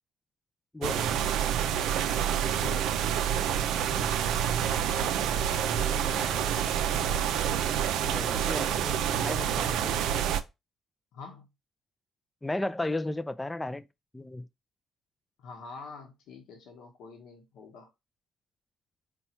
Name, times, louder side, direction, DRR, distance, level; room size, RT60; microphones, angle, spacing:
voice 1, 0.7-1.2 3.9-4.2 8.0-10.0 12.4-13.8 14.1-14.5, left 2 dB, 10° left, 0.4 m, -34 dB
water well rush surge close sewer, 0.8-10.4, right 9 dB, 85° right, 0.4 m, -28 dB
voice 2, 2.4-3.0 4.9-7.5 11.1-11.5 15.4-17.9, left 5 dB, 90° left, 0.9 m, -45 dB
4.3 x 2.3 x 4.2 m
cardioid pair, 90°, 0 cm